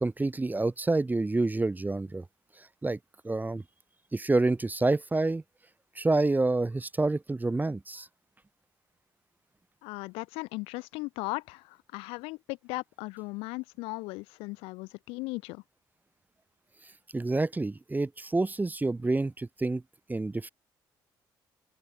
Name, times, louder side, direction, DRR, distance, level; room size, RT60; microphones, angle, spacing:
voice 1, 0.0-2.2 2.8-3.0 3.2-3.6 4.1-5.4 6.0-8.1 17.1-19.8 20.1-20.5, right 2 dB, 20° right, 0.7 m, -28 dB
voice 2, 9.8-15.6, left 24 dB, 90° left, 2.7 m, -37 dB
open air
supercardioid pair, 60°, 9 cm